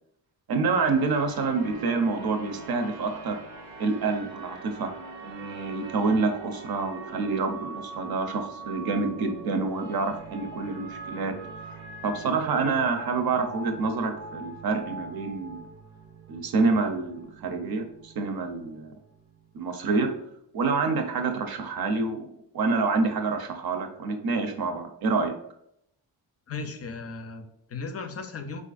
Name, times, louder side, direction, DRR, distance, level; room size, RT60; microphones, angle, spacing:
voice 1, 0.5-3.4 3.8-4.9 5.2-11.3 12.0-15.6 16.3-18.9 19.5-20.1 20.5-22.3 22.5-25.3, right 4 dB, 55° right, 5 dB, 0.6 m, -27 dB
sound 1, 0.9-20.3, right 3 dB, 90° right, 0.8 m, -43 dB
voice 2, 26.5-28.6, left 4 dB, 35° left, 6 dB, 0.4 m, -36 dB
4.2 x 2.5 x 2.4 m, 0.75 s
cardioid pair, 95°, 44 cm